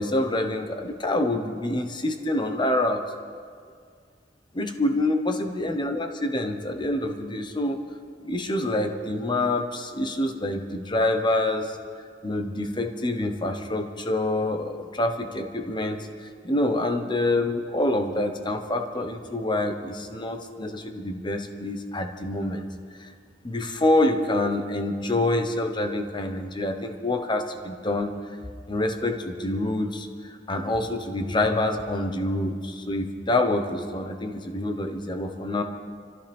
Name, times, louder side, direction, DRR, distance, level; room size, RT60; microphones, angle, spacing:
voice 1, 0.0-3.0 4.5-7.8 8.2-11.8 12.2-22.7 23.0-23.1 23.4-28.1 28.7-35.6, left 1 dB, 25° left, 6 dB, 1.1 m, -26 dB
26.0 x 15.0 x 3.6 m, 2.1 s
head